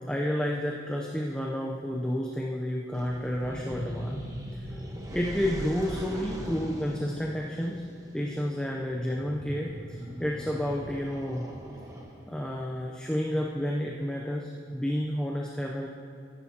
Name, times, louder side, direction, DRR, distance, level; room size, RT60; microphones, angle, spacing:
voice 1, 0.1-4.2 4.5-4.6 5.1-7.8 8.1-11.5 12.2-15.9, equal, 5° left, -1 dB, 0.6 m, -30 dB
sound 1, 2.9-12.4, equal, 20° right, 1.2 m, -41 dB
14.0 x 10.5 x 2.9 m, 2.5 s
head